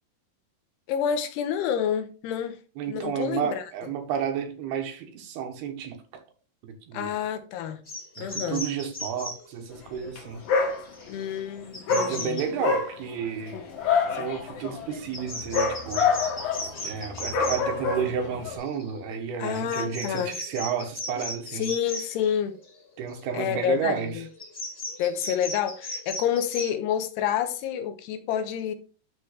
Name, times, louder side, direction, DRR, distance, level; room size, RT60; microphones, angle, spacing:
voice 1, 0.9-2.6 2.9-3.6 6.9-7.8 8.2-8.6 11.1-12.4 19.4-20.4 21.5-22.6 23.3-24.3 25.0-28.7, left 9 dB, 85° left, 3.0 m, -28 dB
voice 2, 2.8-6.0 6.9-7.1 8.2-10.4 11.9-13.6 14.1-16.1 16.8-21.7 23.0-24.2, right 7 dB, 80° right, 3.1 m, -31 dB
sound 1, 7.9-9.5 9.9-10.1 10.4-10.5 10.8-11.3 11.6-12.5 13.8-13.9 14.3-14.4 15.1-17.6 18.4-19.2 19.5-22.7 23.1-23.5 23.9-26.7, left 1 dB, 15° left, 2.3 m, -37 dB
Dog, 10.0-10.2 10.5-11.2 11.9-18.6, left 5 dB, 65° left, 3.4 m, -27 dB
13.0 x 4.5 x 3.2 m
omnidirectional pair, 4.7 m